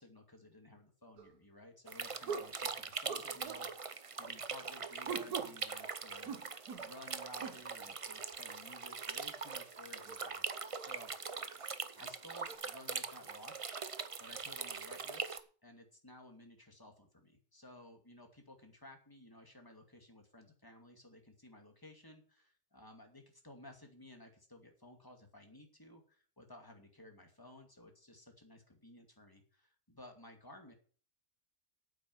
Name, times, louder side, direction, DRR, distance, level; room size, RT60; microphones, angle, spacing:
voice 1, 0.0-6.3 6.8-10.4 10.8-11.1 11.9-13.8 14.2-30.7, left 1 dB, 15° left, 3 dB, 2.4 m, -56 dB
sound 1, 1.2-1.3 2.3-2.6 3.1-3.7 5.1-5.6 6.2-6.9 7.4-7.6 9.3-9.4 10.1-10.2 10.7-10.9 11.6-11.7 12.4-12.6, right 6 dB, 80° right, 1.8 m, -42 dB
sound 2, 1.9-15.4, right 5 dB, 40° right, 0.5 m, -42 dB
9.1 x 8.4 x 7.3 m, 0.43 s
omnidirectional pair, 1.6 m